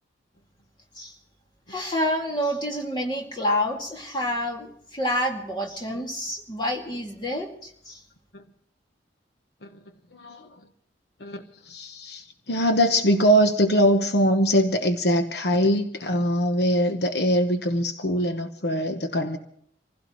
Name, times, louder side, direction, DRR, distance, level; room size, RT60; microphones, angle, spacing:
voice 1, 1.7-8.0, left 1 dB, 25° left, 0 dB, 2.4 m, -28 dB
voice 2, 10.1-10.5 11.2-19.4, equal, 70° left, 6 dB, 1.0 m, -22 dB
26.0 x 16.0 x 3.1 m, 0.66 s
head